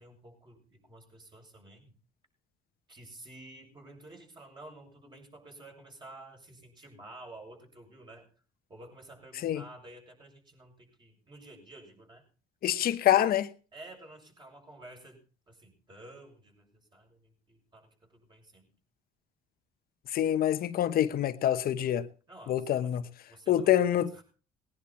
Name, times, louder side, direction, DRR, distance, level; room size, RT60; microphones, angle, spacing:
voice 1, 0.0-1.9 2.9-8.3 8.7-12.2 12.7-12.9 13.7-15.2 15.5-18.7 22.3-23.0 23.3-24.2, right 2 dB, 25° right, 6.8 m, -51 dB
voice 2, 12.6-13.5 20.1-22.1 22.5-23.0 23.5-24.2, left 11 dB, 60° left, 1.1 m, -26 dB
20.0 x 10.5 x 4.3 m
cardioid pair, 110°, 17 cm